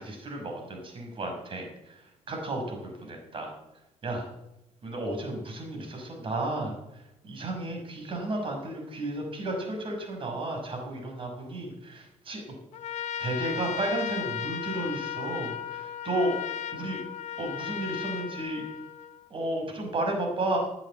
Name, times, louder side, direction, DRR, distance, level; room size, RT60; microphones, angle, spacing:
voice 1, 0.0-2.0 2.3-3.5 4.0-4.3 4.8-6.7 7.2-12.4 13.2-16.3 16.7-17.0 17.4-18.6 19.3-20.6, right 1 dB, 45° right, 2 dB, 5.8 m, -33 dB
Trumpet, 12.7-19.3, left 9 dB, 70° left, 1.1 m, -36 dB
15.0 x 9.0 x 8.2 m, 0.90 s
cardioid pair, 90°, 12 cm